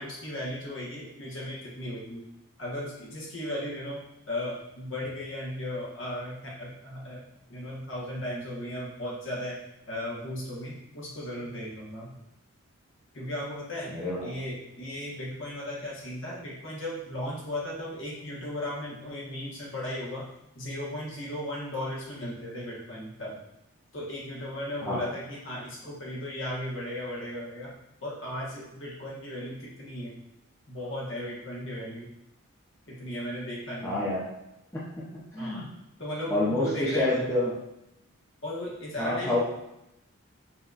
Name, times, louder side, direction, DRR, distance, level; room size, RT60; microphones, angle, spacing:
voice 1, 0.0-2.2 2.6-7.2 7.5-9.6 9.9-12.2 13.1-13.9 14.2-20.2 20.5-23.4 23.9-27.7 28.0-30.2 30.7-32.1 32.9-34.0 35.4-35.7 36.0-37.4 38.4-39.4, left 1 dB, 55° left, -5 dB, 1.3 m, -36 dB
voice 2, 13.9-14.3 24.8-25.0 33.8-34.3 34.7-34.8 35.3-35.7 36.3-37.5 39.0-39.4, left 1 dB, 15° left, -8 dB, 0.7 m, -28 dB
5.8 x 2.9 x 2.5 m, 0.85 s
head